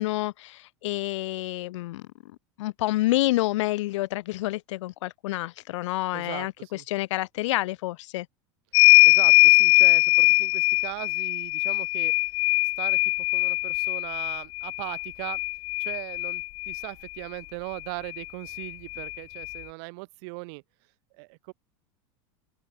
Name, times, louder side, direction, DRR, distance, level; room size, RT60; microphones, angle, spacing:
voice 1, 0.0-2.3 2.6-8.3, left 17 dB, 80° left, 0.8 m, -28 dB
voice 2, 6.1-6.8 9.0-12.1 12.8-15.4 15.8-20.6 21.1-21.5, right 33 dB, 60° right, 2.0 m, -39 dB
sound 1, 8.7-16.9 18.1-18.2 18.5-19.6, left 25 dB, 45° left, 0.4 m, -21 dB
open air
supercardioid pair, 140°, 15 cm